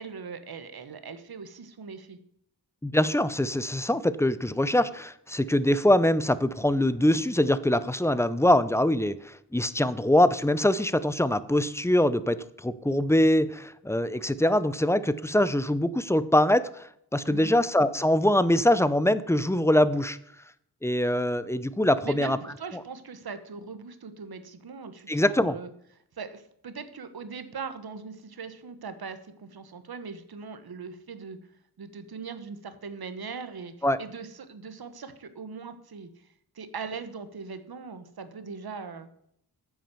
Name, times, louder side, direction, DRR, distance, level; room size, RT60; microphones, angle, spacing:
voice 1, 0.0-2.2 17.2-17.6 22.0-25.7 26.2-31.4 31.8-33.7 34.0-36.3 36.5-39.1, right 5 dB, 70° right, 11 dB, 1.2 m, -40 dB
voice 2, 2.8-16.8 17.1-20.2 20.8-22.4 25.1-25.6 33.8-34.0, left 1 dB, 5° left, 15 dB, 0.5 m, -23 dB
9.1 x 6.3 x 6.9 m, 0.72 s
wide cardioid pair, 80°, 38 cm